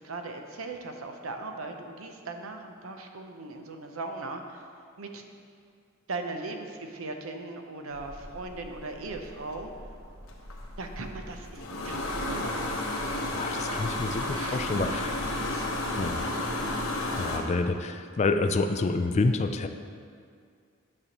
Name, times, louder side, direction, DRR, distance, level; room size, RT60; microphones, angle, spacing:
voice 1, 0.0-4.7 5.0-5.2 6.1-9.7 10.8-12.8 14.0-17.6, right 3 dB, 70° right, 4 dB, 0.7 m, -39 dB
sound 1, 7.9-17.4, left 1 dB, 70° left, 1.1 m, -33 dB
voice 2, 13.3-15.2 16.0-16.2 17.2-19.7, left 3 dB, 30° left, 7 dB, 0.3 m, -28 dB
9.5 x 6.8 x 3.0 m, 2.2 s
head